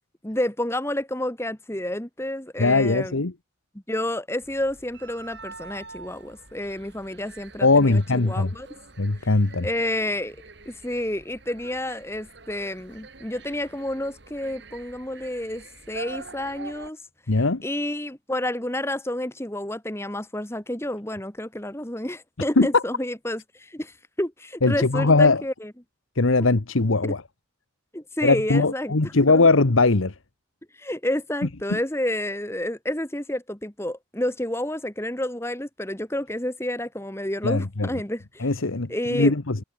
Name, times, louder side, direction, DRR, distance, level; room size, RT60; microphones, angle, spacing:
voice 1, 0.2-3.2 3.9-8.7 9.6-10.4 10.6-17.0 17.6-25.7 27.0-27.1 27.9-29.4 30.8-38.5 38.9-39.3, left 1 dB, 10° left, 1.7 m, -30 dB
voice 2, 2.6-3.3 7.6-8.5 9.0-9.7 17.3-17.6 22.6-22.8 24.6-25.4 26.2-27.2 28.2-30.1 31.7-31.8 37.4-37.9 38.4-39.6, left 3 dB, 80° left, 1.2 m, -20 dB
sound 1, 4.4-16.9, right 3 dB, 55° right, 2.7 m, -45 dB
head